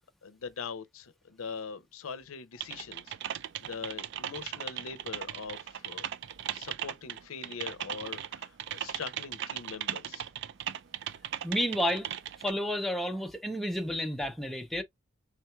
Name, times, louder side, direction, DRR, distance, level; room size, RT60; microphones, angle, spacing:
voice 1, 0.2-3.1 3.6-6.1 6.5-10.3, left 5 dB, 85° left, 0.6 m, -42 dB
Typing, 2.6-12.5, right 10 dB, 55° right, 0.3 m, -38 dB
voice 2, 11.4-12.1 12.4-14.8, equal, ahead, 0.5 m, -31 dB
4.3 x 3.5 x 2.3 m
head